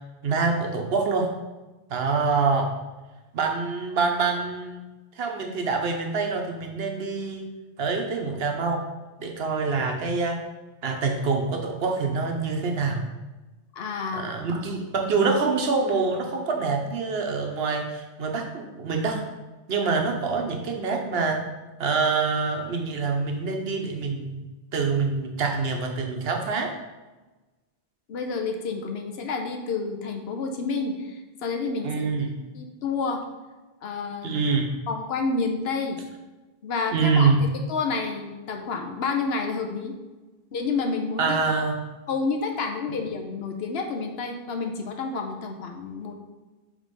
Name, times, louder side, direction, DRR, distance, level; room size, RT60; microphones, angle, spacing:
voice 1, 0.2-1.3 1.9-2.7 3.3-4.9 5.2-7.4 7.8-8.8 9.2-10.4 10.8-13.0 14.1-19.2 19.7-21.4 21.8-24.5 24.7-26.7 31.8-32.3 34.2-34.7 36.9-37.5 41.2-41.7, right 4 dB, 75° right, 3 dB, 1.1 m, -25 dB
voice 2, 13.7-14.2 28.1-31.9 32.5-33.2 33.8-34.4 34.9-36.0 36.6-37.4 37.7-40.0 40.5-41.4 42.1-46.1, left 4 dB, 80° left, 4 dB, 1.0 m, -29 dB
5.2 x 3.5 x 5.2 m, 1.2 s
omnidirectional pair, 1.0 m